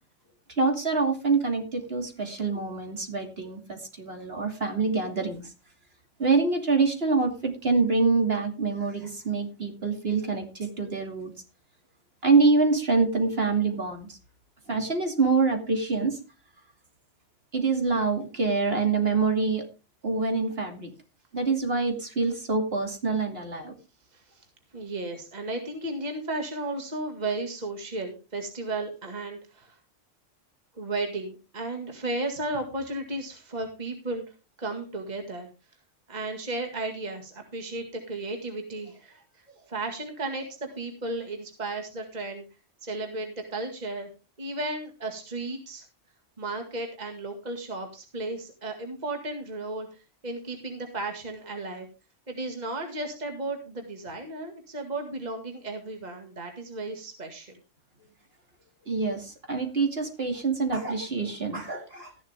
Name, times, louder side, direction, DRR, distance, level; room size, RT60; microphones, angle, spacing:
voice 1, 0.6-5.4 6.2-11.3 12.2-14.2 14.7-16.2 17.5-19.6 20.0-20.9 21.3-23.7 58.9-62.2, right 4 dB, 55° right, 4 dB, 2.8 m, -25 dB
voice 2, 24.1-24.5 24.7-29.8 30.8-34.2 34.6-35.5 36.1-42.4 42.8-44.1 44.4-45.9 46.4-49.9 50.2-51.9 52.3-57.6, right 2 dB, 35° right, 3 dB, 2.2 m, -34 dB
14.0 x 11.0 x 3.5 m, 0.30 s
omnidirectional pair, 1.3 m